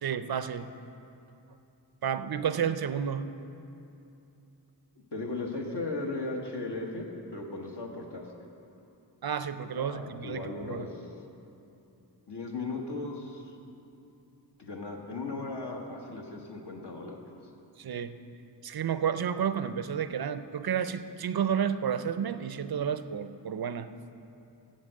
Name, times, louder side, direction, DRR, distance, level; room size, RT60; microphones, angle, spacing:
voice 1, 0.0-0.7 2.0-3.3 9.2-10.9 17.8-18.1 18.6-23.9, right 8 dB, 60° right, 11 dB, 0.5 m, -31 dB
voice 2, 5.1-7.1 7.3-8.3 9.7-11.1 12.3-13.6 14.6-17.2, left 3 dB, 65° left, 0 dB, 1.3 m, -37 dB
7.5 x 7.4 x 7.5 m, 2.8 s
wide cardioid pair, 50°, 44 cm